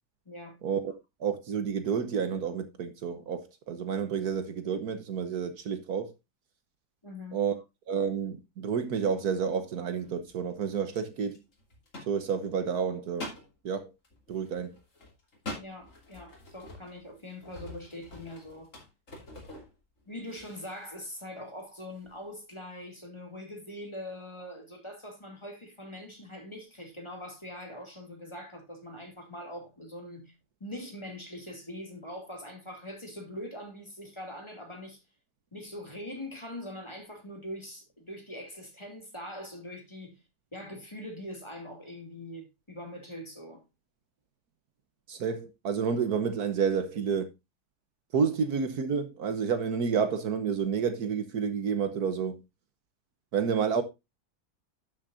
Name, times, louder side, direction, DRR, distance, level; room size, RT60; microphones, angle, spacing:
voice 1, 1.2-6.1 7.3-7.5 7.9-11.4 12.1-13.3 13.6-13.9 14.3-14.7 45.1-47.3 48.1-52.4 53.3-53.8, right 6 dB, 65° right, 1.4 m, -30 dB
voice 2, 7.0-7.4 15.6-18.7 20.1-30.3 30.6-35.0 35.5-40.2 40.5-43.6, left 1 dB, 15° left, 2.4 m, -42 dB
sound 1, 10.0-10.4 10.9-12.7 13.1-13.5 14.0-20.0 20.2-20.9 21.4-21.5 21.8-22.1, left 1 dB, 45° left, 3.1 m, -45 dB
11.5 x 7.3 x 2.5 m
omnidirectional pair, 1.8 m